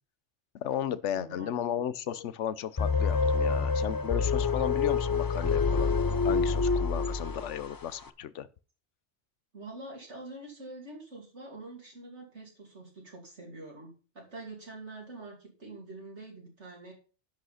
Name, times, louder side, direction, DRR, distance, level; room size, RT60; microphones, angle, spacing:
voice 1, 0.5-5.9 6.2-8.5, left 10 dB, 85° left, 1.0 m, -34 dB
voice 2, 1.1-1.6 9.5-16.9, right 2 dB, 75° right, 3.1 m, -45 dB
sound 1, 2.8-7.8, left 4 dB, 30° left, 0.4 m, -27 dB
10.5 x 6.3 x 5.7 m
omnidirectional pair, 1.2 m